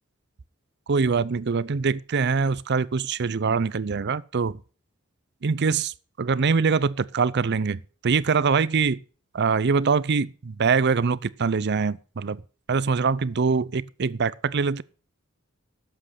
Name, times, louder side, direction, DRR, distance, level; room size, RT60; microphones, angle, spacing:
voice 1, 0.9-4.6 5.4-9.0 9.3-12.4 12.7-14.8, right 5 dB, 55° right, 0.6 m, -24 dB
11.5 x 7.8 x 5.9 m
head